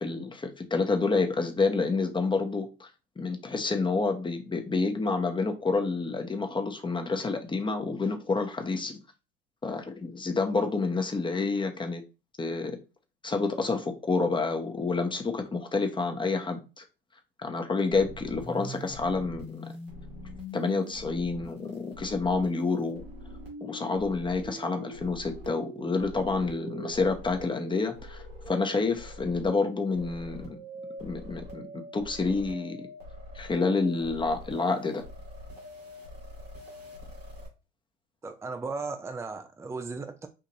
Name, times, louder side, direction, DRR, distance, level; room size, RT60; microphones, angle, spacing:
voice 1, 0.0-2.9 3.2-9.0 9.6-12.0 12.4-12.8 13.2-16.8 17.4-19.7 20.5-23.0 23.6-30.6 31.0-32.8 33.3-35.0, left 3 dB, 15° left, 0.9 m, -28 dB
sound 1, 17.9-37.5, equal, 90° right, 1.7 m, -43 dB
voice 2, 38.2-40.3, right 4 dB, 10° right, 0.5 m, -36 dB
4.6 x 2.5 x 2.9 m
hypercardioid pair, 70°, 29 cm